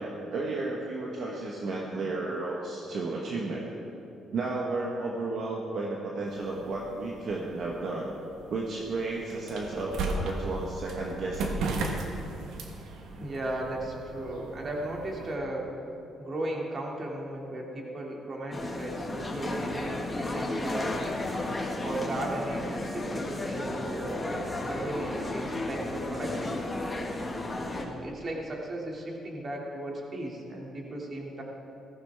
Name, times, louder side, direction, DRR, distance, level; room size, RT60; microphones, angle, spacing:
voice 1, 0.0-3.7 4.3-8.1 8.5-11.6, right 3 dB, 65° right, -2 dB, 1.4 m, -33 dB
sound 1, 6.3-15.4, right 2 dB, 85° right, 1.4 m, -37 dB
voice 2, 13.1-15.7 16.2-20.9 21.8-24.3 24.6-26.8 27.6-31.4, right 1 dB, 40° right, -1 dB, 2.6 m, -36 dB
sound 2, 18.5-27.8, left 2 dB, 20° left, 1.8 m, -33 dB
15.0 x 14.0 x 3.6 m, 2.7 s
cardioid pair, 90°, 0 cm